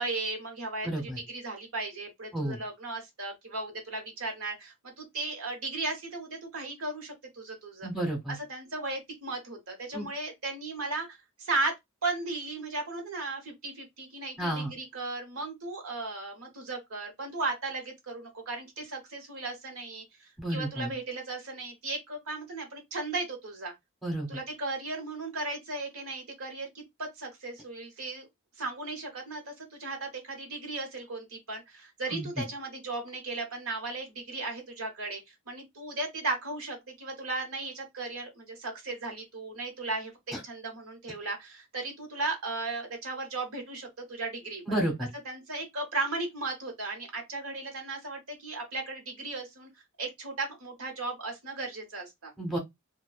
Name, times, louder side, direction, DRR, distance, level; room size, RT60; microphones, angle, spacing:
voice 1, 0.0-7.9 8.3-11.7 12.0-23.7 24.3-28.3 28.6-35.2 35.5-40.1 40.4-44.8 45.2-49.7 50.0-52.3, right 3 dB, 85° right, 1.1 m, -36 dB
voice 2, 0.8-1.2 2.3-2.6 7.8-8.3 9.9-10.1 14.4-14.7 20.4-20.9 24.0-24.3 32.1-32.3 44.7-45.1 52.4-52.6, right 1 dB, ahead, 0.9 m, -31 dB
2.6 x 2.2 x 2.3 m
head